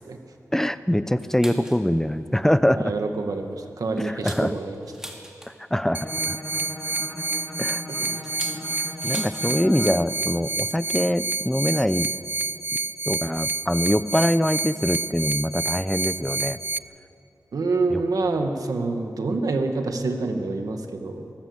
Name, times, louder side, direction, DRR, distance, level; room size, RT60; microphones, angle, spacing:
voice 1, 0.5-2.9 4.0-4.5 5.7-6.4 7.6-7.8 9.0-12.1 13.0-16.6 17.9-18.0, equal, 5° left, 13 dB, 0.8 m, -23 dB
sound 1, 1.2-1.9 2.3-2.4 2.8-3.0 3.5-5.8 7.0-9.5 9.8-9.9 10.2-10.5 11.5-11.6 12.5-12.6 13.4-13.6 13.9-14.0 14.2-14.4, equal, 10° right, 3.3 m, -42 dB
voice 2, 2.7-4.9 8.0-8.1 17.5-21.3, right 3 dB, 85° right, 5 dB, 1.9 m, -27 dB
Bowed string instrument, 5.9-10.1, left 1 dB, 30° left, 2.6 m, -38 dB
sound 2, 5.9-16.8, right 3 dB, 35° right, 0.5 m, -29 dB
21.0 x 18.0 x 8.1 m, 2.7 s
cardioid pair, 55°, 6 cm